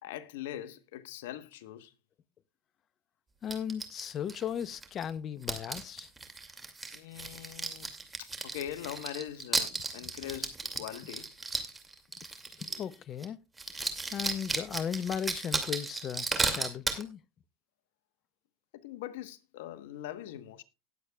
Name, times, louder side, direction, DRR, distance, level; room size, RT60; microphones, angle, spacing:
voice 1, 0.0-1.9 6.9-7.9 8.2-11.3 18.7-20.6, left 12 dB, 75° left, 1.1 m, -42 dB
voice 2, 3.4-6.1 12.6-13.4 14.1-17.2, left 8 dB, 40° left, 0.7 m, -36 dB
sound 1, 3.5-5.1 5.4-12.9 13.2-13.3 13.6-17.0, right 3 dB, 15° right, 2.4 m, -35 dB
19.0 x 8.2 x 2.3 m
hypercardioid pair, 95°, 0 cm